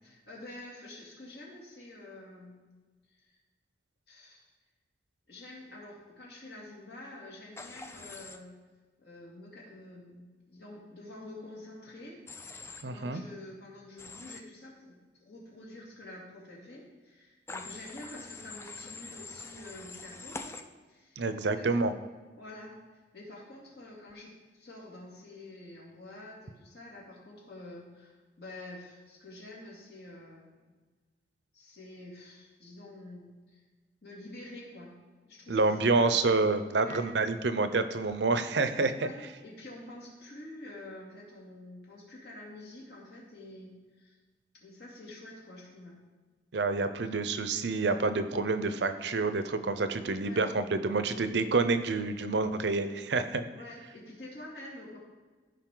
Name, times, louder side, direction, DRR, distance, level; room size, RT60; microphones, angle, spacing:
voice 1, 0.0-3.3 4.1-4.4 5.3-8.6 9.0-12.2 12.8-20.6 20.9-21.8 22.4-30.6 31.5-33.6 34.0-34.9 35.2-36.3 36.8-37.1 38.9-44.2 44.5-46.0 50.2-50.5 53.5-55.0, left 1 dB, 65° left, -4 dB, 2.8 m, -48 dB
Human voice / Train, 7.6-8.4 12.3-12.8 14.0-14.4 17.5-20.6, left 3 dB, 15° left, 0.4 m, -44 dB
voice 2, 12.8-13.2 21.2-21.9 35.5-39.1 46.5-53.5, right 3 dB, 70° right, 10 dB, 0.6 m, -28 dB
15.0 x 5.2 x 3.9 m, 1.3 s
head